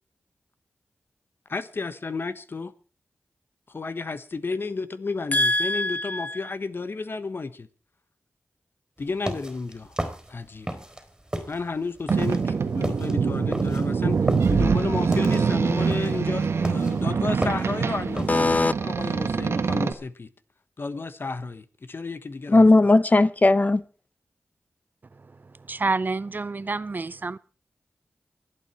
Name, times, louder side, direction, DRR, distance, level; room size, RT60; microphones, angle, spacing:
voice 1, 1.5-2.7 3.7-7.7 9.0-10.0 10.3-10.7 11.5-14.2 14.5-20.3 20.8-22.7, left 3 dB, 55° left, 1.2 m, -32 dB
voice 2, 5.3-6.4 18.3-18.7 22.5-23.8, left 2 dB, 35° left, 0.8 m, -19 dB
sound 1, 9.0-11.0 11.3-18.5, right 1 dB, 15° right, 3.7 m, -33 dB
Boat Water vehicle, 12.1-19.9, right 5 dB, 80° right, 1.2 m, -24 dB
voice 3, 25.7-27.4, right 3 dB, 45° right, 0.6 m, -28 dB
25.5 x 8.9 x 4.4 m
cardioid pair, 55°, 4 cm